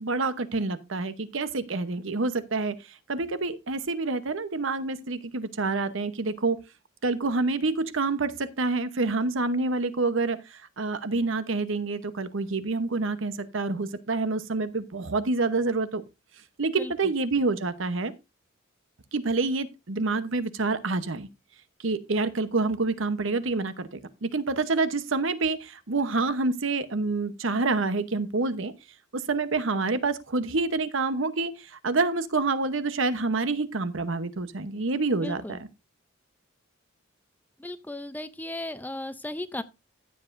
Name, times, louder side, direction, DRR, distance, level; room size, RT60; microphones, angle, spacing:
voice 1, 0.0-6.6 7.0-16.0 16.6-18.1 19.1-21.3 21.8-28.7 29.1-35.7, right 3 dB, 65° right, 0.9 m, -27 dB
voice 2, 35.2-35.6 37.6-39.6, left 1 dB, 10° left, 0.5 m, -35 dB
14.5 x 7.8 x 2.6 m
head